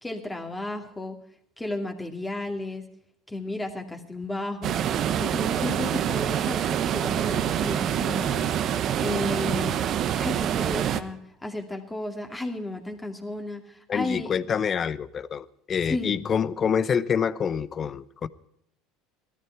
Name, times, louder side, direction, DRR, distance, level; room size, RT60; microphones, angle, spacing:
voice 1, 0.0-1.2 1.6-2.8 3.3-4.8 5.2-9.8 10.2-14.3 15.9-16.1, left 2 dB, 10° left, 2.5 m, -33 dB
sound 1, 4.6-11.0, right 10 dB, 50° right, 1.0 m, -26 dB
voice 2, 13.9-18.3, left 7 dB, 35° left, 0.8 m, -26 dB
16.5 x 13.5 x 4.6 m
hypercardioid pair, 80°, 0 cm